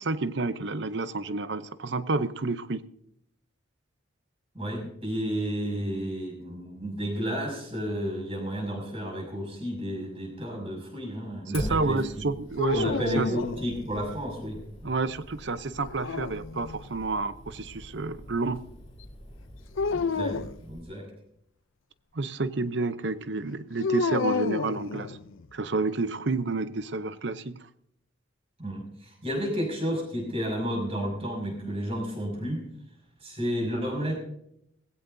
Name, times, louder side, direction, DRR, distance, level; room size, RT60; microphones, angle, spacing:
voice 1, 0.0-2.8 11.5-13.3 14.8-18.6 22.1-25.2 25.5-27.6, right 3 dB, 60° right, 0.7 m, -29 dB
voice 2, 4.5-12.2 12.7-14.6 19.9-21.1 28.6-32.6 33.2-34.2, equal, 30° right, 6.1 m, -32 dB
Fire, 11.5-20.8, equal, 30° left, 2.8 m, -44 dB
sound 1, 12.6-14.1 15.8-16.9 19.8-20.6 23.8-25.5, left 4 dB, 80° left, 0.6 m, -30 dB
20.0 x 16.0 x 2.7 m
head